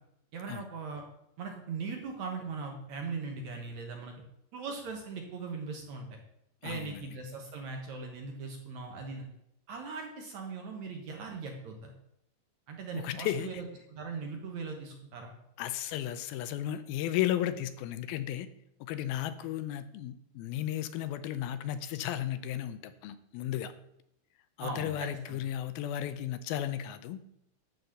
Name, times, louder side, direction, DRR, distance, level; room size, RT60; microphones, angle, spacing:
voice 1, 0.3-1.0 1.4-4.2 4.5-6.2 6.6-9.3 9.7-11.9 12.7-15.3 24.6-25.4, right 4 dB, 60° right, 2 dB, 2.0 m, -39 dB
voice 2, 6.6-7.1 12.9-13.5 15.6-18.5 18.8-23.7 24.6-27.2, left 11 dB, 80° left, 12 dB, 2.4 m, -34 dB
12.0 x 4.1 x 7.9 m, 0.79 s
omnidirectional pair, 4.4 m